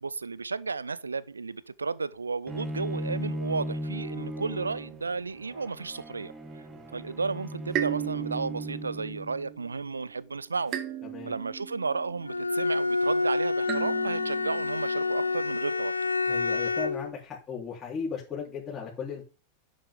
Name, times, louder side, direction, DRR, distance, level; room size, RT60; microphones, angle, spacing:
voice 1, 0.0-6.3 6.9-10.8 11.3-15.9, right 4 dB, 75° right, 0.6 m, -33 dB
Bowed string instrument, 2.5-9.5, equal, 15° right, 2.0 m, -37 dB
sound 1, 6.9-7.4 7.7-10.2 10.7-12.8 13.6-15.3, right 12 dB, 35° right, 1.4 m, -37 dB
Bowed string instrument 2, 12.3-17.1, left 3 dB, 80° left, 0.7 m, -28 dB
voice 2, 16.3-19.2, left 6 dB, 20° left, 3.7 m, -36 dB
11.0 x 7.7 x 3.8 m
figure-of-eight pair, 90°, 0 cm